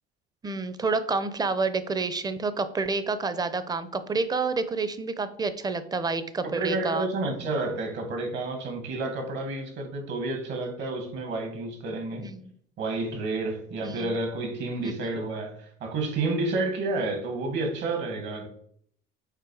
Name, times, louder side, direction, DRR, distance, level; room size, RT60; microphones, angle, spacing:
voice 1, 0.4-7.1 12.2-12.4 13.8-14.1 14.8-14.9, right 4 dB, 20° right, 0.7 m, -29 dB
voice 2, 6.4-12.2 12.8-18.5, right 2 dB, 60° right, 2.0 m, -30 dB
6.6 x 4.3 x 4.8 m
cardioid pair, 120°, 21 cm